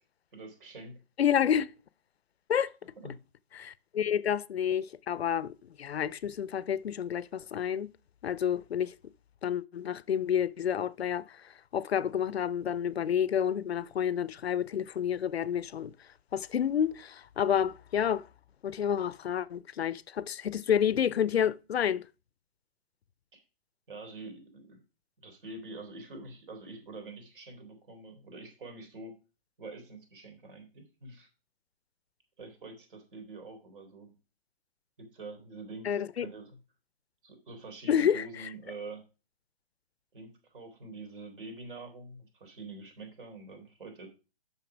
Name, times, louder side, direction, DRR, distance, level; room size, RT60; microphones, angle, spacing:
voice 1, 0.3-1.0 3.0-3.2 23.3-23.4 23.9-24.8 25.2-29.1 29.6-31.3 32.4-34.1 35.0-36.6 37.2-39.1 40.1-44.1, right 3 dB, 55° right, 3.5 m, -46 dB
voice 2, 1.2-1.7 2.5-2.7 3.5-7.9 8.2-8.9 9.4-11.4 11.7-15.9 16.3-18.2 18.6-22.1 35.8-36.3 37.9-38.2, left 9 dB, 80° left, 0.6 m, -29 dB
6.9 x 5.8 x 6.0 m
hypercardioid pair, 140°, 31 cm